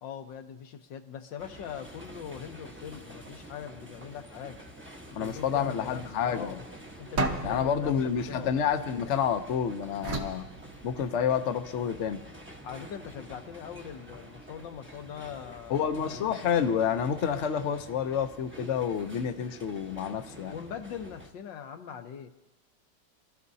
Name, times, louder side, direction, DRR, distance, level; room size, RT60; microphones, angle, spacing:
voice 1, 0.0-4.6 5.1-6.6 7.0-7.9 8.3-8.5 12.6-16.2 20.5-22.3, left 8 dB, 80° left, 6 dB, 1.7 m, -41 dB
sound 1, 1.4-21.3, right 1 dB, 10° right, 0.7 m, -48 dB
voice 2, 5.1-6.6 7.4-10.5 10.8-12.2 15.7-20.5, left 8 dB, 55° left, 7 dB, 0.8 m, -29 dB
sound 2, 7.2-9.4 10.0-11.4, right 2 dB, 50° right, 1.5 m, -34 dB
25.0 x 14.0 x 2.7 m, 0.95 s
omnidirectional pair, 2.0 m